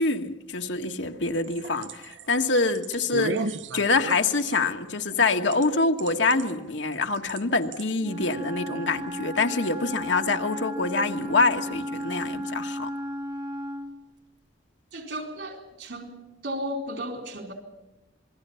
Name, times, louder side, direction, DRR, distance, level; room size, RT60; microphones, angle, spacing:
voice 1, 0.0-12.9, left 3 dB, 85° left, 1.4 m, -25 dB
sound 1, 1.3-5.7 6.0-6.5 7.0-7.4 7.7-7.8, right 3 dB, 90° right, 0.8 m, -34 dB
Wind instrument woodwind instrument, 8.0-14.0, equal, 25° right, 0.9 m, -34 dB
voice 2, 14.9-16.2 16.4-17.5, equal, 75° right, 4.3 m, -34 dB
27.0 x 21.5 x 5.7 m
head